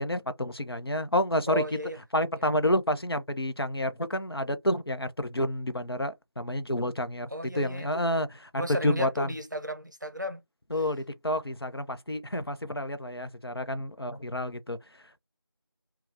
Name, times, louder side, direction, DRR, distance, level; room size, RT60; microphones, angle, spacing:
voice 1, 0.0-1.6 2.1-7.3 7.5-8.5 8.8-9.3 10.7-14.8, left 1 dB, 75° left, 0.7 m, -29 dB
voice 2, 1.5-2.0 2.4-2.5 7.3-8.1 8.6-10.4, equal, 50° right, 0.6 m, -34 dB
2.7 x 2.3 x 3.3 m
figure-of-eight pair, 180°, 13 cm